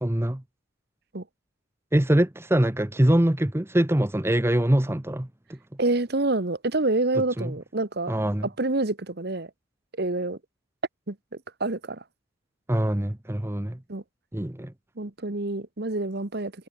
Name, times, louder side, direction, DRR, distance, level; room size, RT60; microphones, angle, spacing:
voice 1, 0.0-0.4 1.9-5.6 7.4-7.6 8.1-8.5 12.7-13.8 14.3-14.7, right 1 dB, 15° right, 0.8 m, -23 dB
voice 2, 5.8-8.1 8.6-9.5 10.0-10.4 11.1-11.2 11.6-12.0 13.9-14.0 15.0-16.5, right 2 dB, 55° right, 1.4 m, -27 dB
head